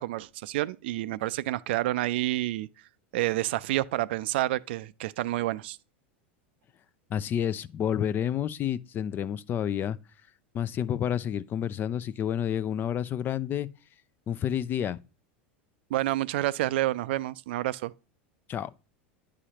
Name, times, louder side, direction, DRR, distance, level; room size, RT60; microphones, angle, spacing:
voice 1, 0.0-2.7 3.1-5.8 15.9-17.9, right 16 dB, 70° right, 0.4 m, -29 dB
voice 2, 7.1-10.0 10.5-13.7 14.3-15.0 18.5-18.7, left 9 dB, 35° left, 0.4 m, -29 dB
10.0 x 4.9 x 2.9 m
hypercardioid pair, 100°, 6 cm